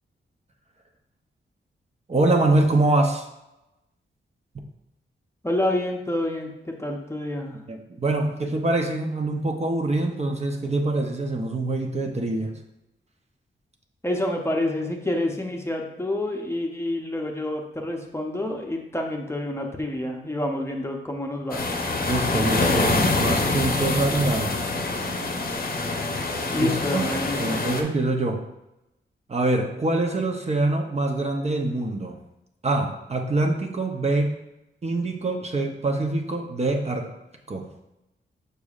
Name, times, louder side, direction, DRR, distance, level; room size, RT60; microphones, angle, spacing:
voice 1, 2.1-3.3 7.7-12.5 22.1-24.5 26.6-27.1 27.4-28.4 29.3-32.2 32.6-34.4 34.8-37.1 37.5-37.7, right 2 dB, 30° right, 2 dB, 0.6 m, -24 dB
voice 2, 5.4-7.6 14.0-21.6 26.5-27.6, left 1 dB, 10° left, 1 dB, 0.7 m, -28 dB
sound 1, 21.5-27.8, left 3 dB, 45° left, 0.7 m, -25 dB
6.8 x 6.2 x 2.4 m, 0.91 s
wide cardioid pair, 150°, 21 cm